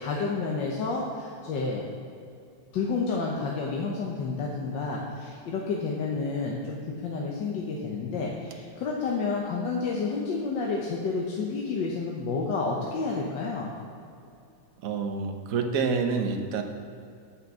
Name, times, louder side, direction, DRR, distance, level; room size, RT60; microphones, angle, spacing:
voice 1, 0.0-1.8 2.7-13.7, left 4 dB, 65° left, -2 dB, 1.6 m, -30 dB
voice 2, 14.8-16.6, right 5 dB, 55° right, 5 dB, 1.0 m, -27 dB
8.6 x 6.5 x 7.2 m, 2.5 s
omnidirectional pair, 2.3 m